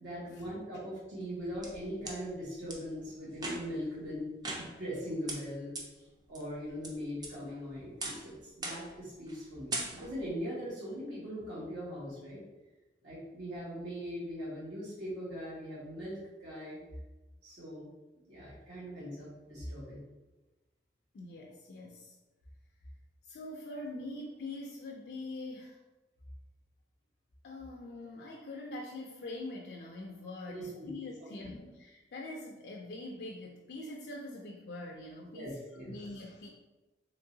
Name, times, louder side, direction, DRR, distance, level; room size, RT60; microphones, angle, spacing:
voice 1, 0.0-12.4 13.0-16.8 17.4-17.9 18.3-20.0 30.5-30.9 31.4-31.5 35.3-35.9, equal, 80° right, -8 dB, 1.3 m, -41 dB
sound 1, 1.2-2.2 2.7-2.8 3.3-3.9 4.4-5.0 5.3-5.4 5.8-5.9 6.3-6.9 7.2-7.6 8.0-8.3 8.6-9.0 9.3-9.4 9.7-10.3, right 2 dB, 20° right, 0.4 m, -39 dB
voice 2, 21.1-22.2 23.2-25.8 27.4-35.6 35.9-36.5, left 2 dB, 65° left, 0 dB, 0.4 m, -43 dB
3.6 x 3.0 x 2.6 m, 1.1 s
head